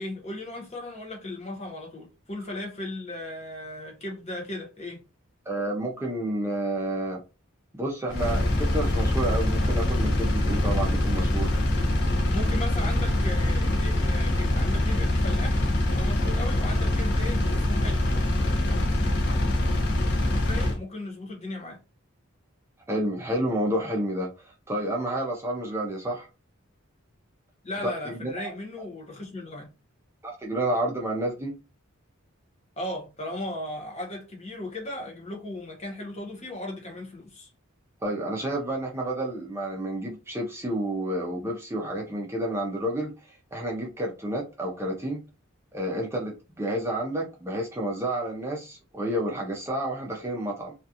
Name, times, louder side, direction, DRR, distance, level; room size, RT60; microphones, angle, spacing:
voice 1, 0.0-5.0 12.3-18.2 18.6-18.8 20.5-21.8 27.6-29.7 32.8-37.5, left 1 dB, 30° left, 0.9 m, -37 dB
voice 2, 5.5-7.2 7.7-11.5 22.9-26.3 28.1-28.5 30.2-31.5 38.0-45.2 45.7-50.7, right 1 dB, 10° right, 0.5 m, -30 dB
Engine, 8.1-20.8, left 1 dB, 50° left, 0.5 m, -24 dB
2.4 x 2.3 x 2.7 m
head